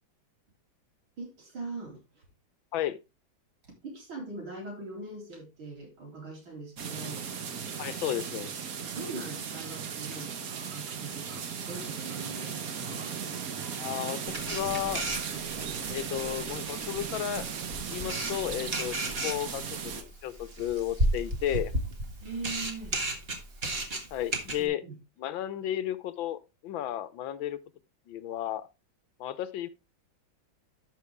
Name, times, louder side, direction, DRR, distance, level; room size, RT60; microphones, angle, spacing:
voice 1, 1.2-2.2 3.8-7.3 8.4-8.5 8.9-13.3 22.2-23.0 24.6-25.0, right 3 dB, 80° right, 4.5 m, -42 dB
sound 1, 6.8-20.0, right 7 dB, 50° right, 1.4 m, -37 dB
voice 2, 7.8-8.5 13.8-15.0 15.9-17.5 17.9-21.7 24.1-24.8 25.2-27.6 28.1-28.7 29.2-29.7, left 12 dB, 80° left, 1.5 m, -33 dB
Camera, 14.3-24.7, right 1 dB, 30° right, 1.7 m, -34 dB
12.0 x 5.5 x 3.4 m
omnidirectional pair, 2.2 m